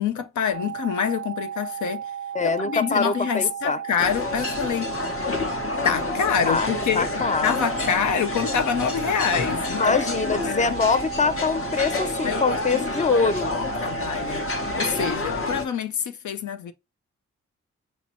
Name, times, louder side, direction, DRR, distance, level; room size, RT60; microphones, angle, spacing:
voice 1, 0.0-2.0 2.4-5.0 5.8-7.1 7.4-10.0 10.3-10.8 12.2-12.4 12.7-13.3 13.6-14.5 14.7-16.7, left 7 dB, 70° left, 0.6 m, -26 dB
sound 1, 0.5-15.1, right 9 dB, 50° right, 0.5 m, -34 dB
voice 2, 2.3-3.8 6.4-6.7 7.0-7.6 9.8-13.5, left 4 dB, 25° left, 0.5 m, -24 dB
sound 2, 4.0-15.7, left 3 dB, 45° left, 1.0 m, -29 dB
5.7 x 2.1 x 2.9 m
supercardioid pair, 45°, 30 cm